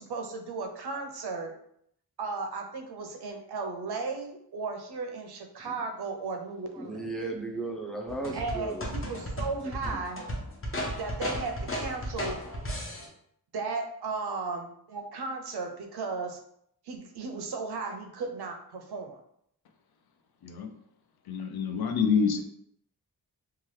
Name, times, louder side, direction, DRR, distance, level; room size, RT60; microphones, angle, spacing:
voice 1, 0.0-1.5 2.2-7.1 8.3-10.2 11.0-12.4 13.5-16.4 16.8-19.2, right 4 dB, 85° right, 4 dB, 0.6 m, -35 dB
voice 2, 6.8-8.9 9.6-10.0, right 2 dB, ahead, 1 dB, 0.4 m, -36 dB
sound 1, 8.1-13.1, equal, 35° left, 0.7 m, -35 dB
voice 3, 20.4-20.7 21.3-22.4, left 6 dB, 75° left, 5 dB, 0.5 m, -27 dB
2.8 x 2.3 x 3.1 m, 0.70 s
wide cardioid pair, 115°, 38 cm